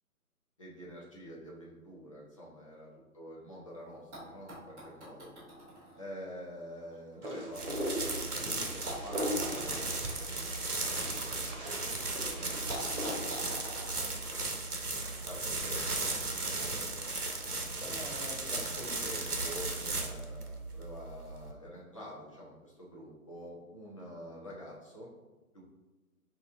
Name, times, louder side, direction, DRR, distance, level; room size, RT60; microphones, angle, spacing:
voice 1, 0.6-5.3 6.0-8.2 8.4-13.7 14.2-14.5 15.1-16.1 16.6-17.1 17.7-25.1 25.5-25.6, equal, 25° left, -5 dB, 0.6 m, -47 dB
sound 1, 4.1-8.2 8.8-11.8 12.1-12.2 12.7-15.1 16.1-16.2, right 1 dB, 10° right, 0.9 m, -47 dB
Wind, 7.2-13.3, equal, 55° right, 1.1 m, -40 dB
sound 2, 7.5-21.5, right 3 dB, 90° right, 0.9 m, -36 dB
6.1 x 2.8 x 2.5 m, 1.1 s
figure-of-eight pair, 140°, 44 cm